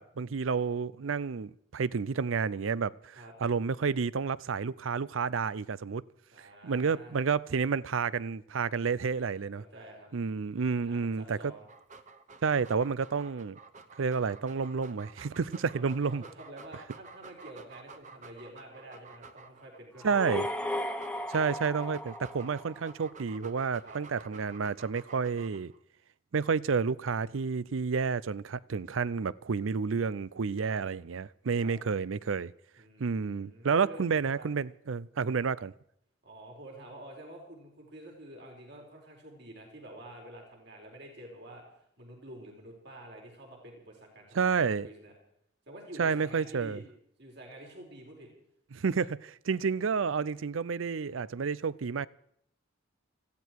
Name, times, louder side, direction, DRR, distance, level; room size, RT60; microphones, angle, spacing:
voice 1, 0.0-6.0 6.6-9.6 10.1-11.5 12.4-13.6 14.0-16.2 20.0-20.5 21.3-25.7 26.3-32.5 33.0-35.7 44.3-44.9 46.0-46.8 48.7-52.1, right 5 dB, 80° right, 0.5 m, -30 dB
voice 2, 6.3-7.1 9.6-10.1 10.7-11.7 15.7-20.4 23.8-24.0 30.6-30.8 31.6-31.7 32.8-34.0 34.4-34.5 36.2-41.6 42.0-45.1 45.7-46.8 47.2-48.3, right 1 dB, 60° right, 5.0 m, -48 dB
Dog, 11.6-19.8 20.4-25.8, right 4 dB, 40° right, 1.0 m, -51 dB
sound 1, 20.0-23.0, left 1 dB, 5° left, 1.1 m, -36 dB
20.0 x 15.0 x 4.7 m
head